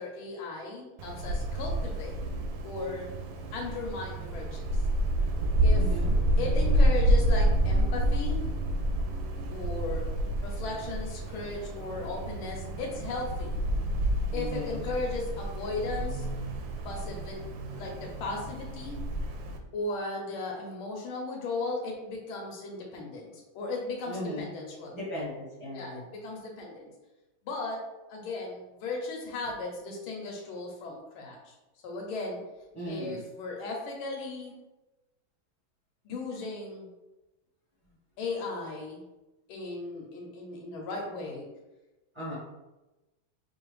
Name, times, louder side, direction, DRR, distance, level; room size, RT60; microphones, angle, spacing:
voice 1, 0.0-2.2 2.6-3.1 3.5-4.8 5.6-6.0 6.4-8.5 9.5-10.1 10.4-13.6 14.3-16.4 16.8-19.0 19.7-25.0 25.7-26.9 27.4-31.6 31.8-32.4 32.8-34.5 36.0-36.9 37.8-39.0 39.5-41.5, left 3 dB, 90° left, -1 dB, 1.6 m, -36 dB
Wind, 1.0-19.6, right 1 dB, 75° right, 1.2 m, -29 dB
voice 2, 5.7-6.1 14.3-14.8 24.1-24.5 24.9-26.0 32.7-33.2 42.1-42.3, equal, 30° right, -8 dB, 0.5 m, -37 dB
4.8 x 2.5 x 3.1 m, 1.0 s
omnidirectional pair, 2.2 m